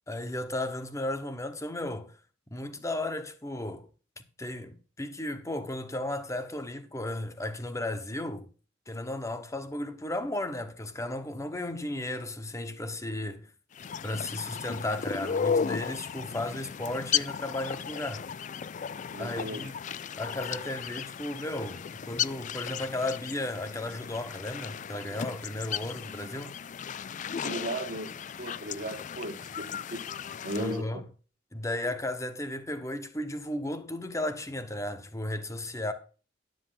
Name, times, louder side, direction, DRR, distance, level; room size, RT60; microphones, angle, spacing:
voice 1, 0.1-2.2 2.5-3.9 4.4-8.5 8.9-13.5 14.0-18.2 19.2-19.8 20.2-26.5 30.6-31.0 31.5-35.9, left 1 dB, 15° left, 1.1 m, -34 dB
sound 1, 13.7-30.8, left 7 dB, 40° left, 0.4 m, -35 dB
voice 2, 19.1-19.6 27.4-28.1 28.4-30.0 30.4-31.0, right 1 dB, 50° right, 1.5 m, -36 dB
11.5 x 7.8 x 4.0 m
head